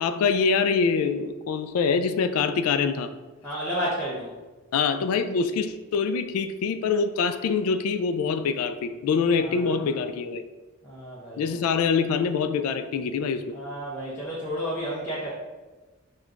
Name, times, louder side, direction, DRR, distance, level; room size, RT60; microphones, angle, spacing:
voice 1, 0.0-3.1 4.7-10.4 11.4-13.5, left 5 dB, 85° left, 12 dB, 0.3 m, -25 dB
voice 2, 3.4-4.3 9.4-10.0 10.8-11.6 13.5-15.3, equal, 10° left, -8 dB, 0.5 m, -32 dB
6.1 x 2.2 x 2.4 m, 1.2 s
head